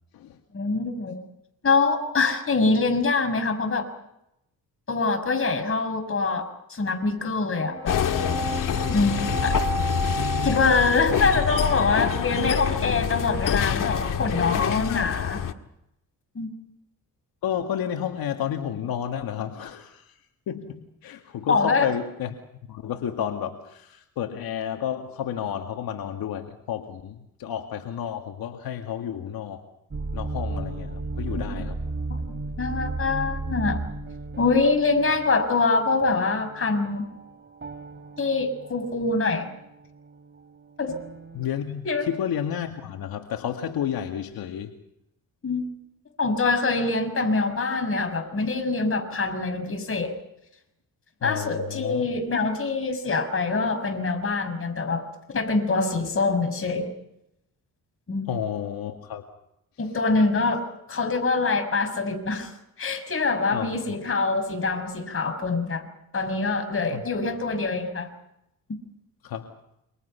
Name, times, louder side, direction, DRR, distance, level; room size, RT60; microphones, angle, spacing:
voice 1, 0.5-1.2 1.6-3.9 4.9-8.0 8.9-9.6 10.4-15.4 16.3-16.5 21.5-21.9 31.6-31.7 32.1-33.8 34.4-37.1 38.2-39.5 40.8-41.0 41.8-42.1 45.4-45.7 46.2-50.1 51.2-55.1 55.3-56.9 58.1-58.3 59.8-60.6 60.9-62.5 62.8-65.8 66.1-68.1 68.7-68.8, left 3 dB, 40° left, 5 dB, 6.5 m, -24 dB
sound 1, 7.5-12.6, right 3 dB, 15° right, 3.0 m, -33 dB
sound 2, 7.8-15.5, left 8 dB, 65° left, 1.9 m, -26 dB
voice 2, 10.2-10.9 14.7-15.2 17.4-20.1 20.5-22.4 22.7-29.6 30.1-31.8 41.3-44.7 51.2-52.1 58.3-59.3 63.5-64.0 66.9-67.0 69.2-69.5, left 9 dB, 85° left, 4 dB, 2.1 m, -31 dB
sound 3, 29.9-41.5, right 3 dB, 30° right, 3.2 m, -35 dB
28.5 x 25.5 x 5.7 m, 0.82 s
cardioid pair, 90°, 35 cm